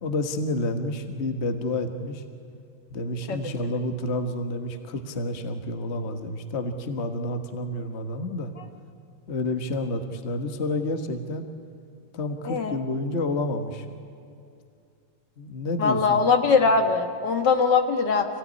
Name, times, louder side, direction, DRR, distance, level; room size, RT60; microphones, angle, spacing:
voice 1, 0.0-2.2 2.9-8.5 9.3-11.5 12.1-13.8 15.4-16.2, left 2 dB, 35° left, 7 dB, 1.5 m, -29 dB
voice 2, 12.5-12.8 15.8-18.3, left 5 dB, 60° left, 5 dB, 2.2 m, -21 dB
27.0 x 17.0 x 9.7 m, 2.5 s
omnidirectional pair, 2.2 m